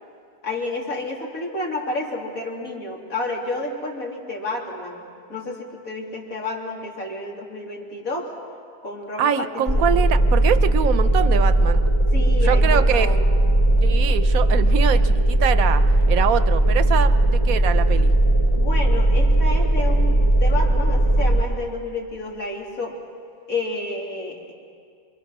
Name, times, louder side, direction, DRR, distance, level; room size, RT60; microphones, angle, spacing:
voice 1, 0.4-8.3 8.8-9.9 12.1-13.2 18.6-22.9 23.5-24.5, left 2 dB, 75° left, -2 dB, 3.5 m, -30 dB
voice 2, 9.2-11.8 12.4-13.1 13.8-15.8 16.1-18.1, right 9 dB, 80° right, 11 dB, 1.2 m, -24 dB
sound 1, 9.7-21.4, right 1 dB, 30° left, 0.7 m, -18 dB
27.0 x 22.5 x 6.1 m, 2.2 s
omnidirectional pair, 1.5 m